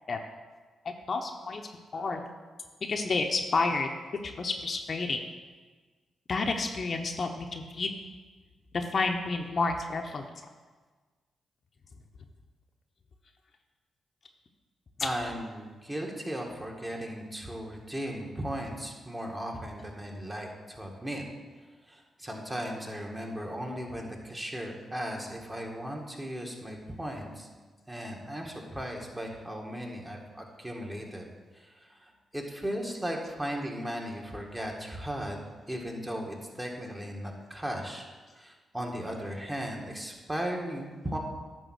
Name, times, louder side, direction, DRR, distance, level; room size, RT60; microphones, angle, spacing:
voice 1, 0.8-1.6 1.9-2.3 2.8-3.9 4.2-5.2 6.3-7.9 8.7-10.3 15.0-15.1, left 3 dB, 50° left, 4 dB, 0.8 m, -30 dB
voice 2, 15.0-21.2 21.6-27.5 27.9-35.4 35.7-38.0 38.3-41.2, equal, 20° right, 0 dB, 1.8 m, -37 dB
10.0 x 3.6 x 6.4 m, 1.4 s
supercardioid pair, 50°, 0 cm